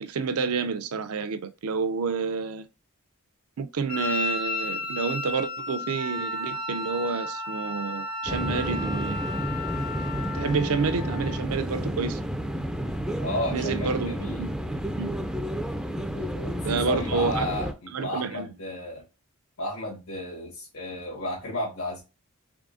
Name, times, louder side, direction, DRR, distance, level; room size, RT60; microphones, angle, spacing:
voice 1, 0.0-2.7 3.6-9.2 10.3-12.2 13.5-14.5 15.0-15.2 16.6-17.5 17.9-18.5, right 4 dB, 75° right, 0.5 m, -29 dB
Wind instrument woodwind instrument, 3.9-10.5, left 1 dB, 65° left, 1.2 m, -33 dB
Wind instrument woodwind instrument 2, 5.9-11.5, left 11 dB, 45° left, 0.6 m, -40 dB
sound 1, 8.3-17.7, equal, 5° right, 0.3 m, -31 dB
voice 2, 13.2-14.4 16.1-19.0 19.6-22.0, left 1 dB, 80° left, 1.4 m, -33 dB
3.6 x 3.4 x 2.5 m
head